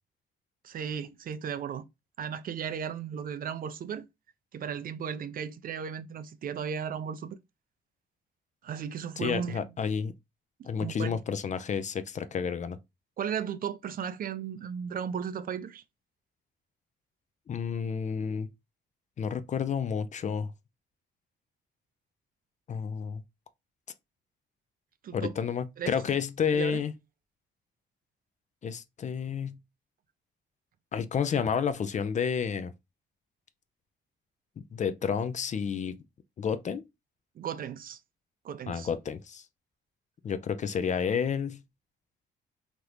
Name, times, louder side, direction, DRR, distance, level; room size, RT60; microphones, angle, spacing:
voice 1, 0.6-1.9 2.2-4.1 4.5-7.4 8.6-9.7 10.6-11.2 13.2-15.8 25.0-25.4 25.8-26.0 26.5-26.8 37.4-38.0 38.4-38.9, right 8 dB, 45° right, 0.4 m, -35 dB
voice 2, 9.2-10.1 10.6-12.8 17.5-18.5 19.2-20.5 22.7-23.2 25.1-26.9 28.6-29.6 30.9-32.7 34.6-36.0 36.4-36.9 38.7-39.4 40.2-41.6, left 7 dB, 40° left, 0.4 m, -30 dB
2.9 x 2.5 x 3.2 m
cardioid pair, 90°, 20 cm